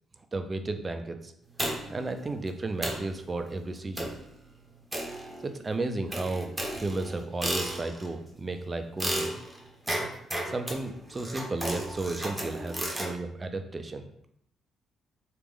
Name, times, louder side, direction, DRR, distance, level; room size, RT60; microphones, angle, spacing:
voice 1, 0.3-1.3 1.9-4.1 5.4-9.4 10.4-14.1, right 2 dB, 25° right, 7 dB, 0.4 m, -33 dB
sound 1, 1.6-2.1 2.5-2.6 2.8-3.1 4.0-4.3 4.9-5.6 6.1-8.1 9.0-13.1, right 1 dB, 10° right, 0.8 m, -34 dB
3.2 x 2.4 x 3.5 m, 0.73 s
cardioid pair, 90°, 0 cm